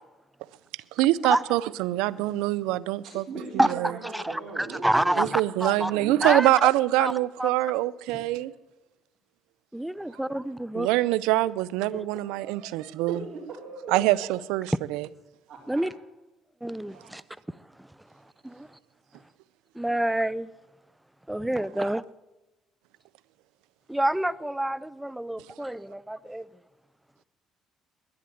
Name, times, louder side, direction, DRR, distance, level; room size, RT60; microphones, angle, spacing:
voice 1, 1.0-3.2 3.7-3.9 5.2-8.5 10.7-13.2 13.9-15.1, right 17 dB, 85° right, 0.4 m, -24 dB
voice 2, 3.0-5.3 5.8-6.1 8.1-8.6 12.1-14.3 15.5-15.9, right 3 dB, 55° right, 3.5 m, -40 dB
voice 3, 4.0-5.9 6.2-6.7 7.0-7.1 7.4-7.5 9.7-10.9 11.9-12.1 15.7-15.9 16.6-17.2 18.4-18.7 19.8-20.5 21.3-22.0 23.9-26.5, right 1 dB, 5° right, 0.5 m, -27 dB
11.5 x 10.5 x 8.7 m
supercardioid pair, 65°, 0 cm